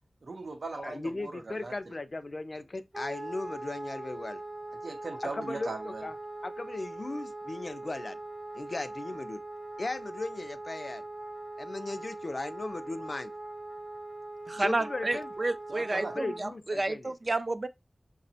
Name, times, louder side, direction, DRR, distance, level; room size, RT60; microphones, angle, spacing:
voice 1, 0.2-2.0 4.8-6.1 15.7-16.1, right 3 dB, 85° right, 0.6 m, -39 dB
voice 2, 0.8-4.4 5.2-6.2 6.4-8.2 8.5-9.4 9.8-11.0 11.6-13.3 14.6-15.3 16.1-17.1, left 2 dB, 50° left, 0.3 m, -37 dB
Wind instrument woodwind instrument, 2.9-16.4, right 2 dB, 30° right, 0.7 m, -41 dB
voice 3, 14.5-17.7, right 2 dB, 50° right, 0.3 m, -31 dB
5.8 x 2.0 x 2.6 m
wide cardioid pair, 70°, 0 cm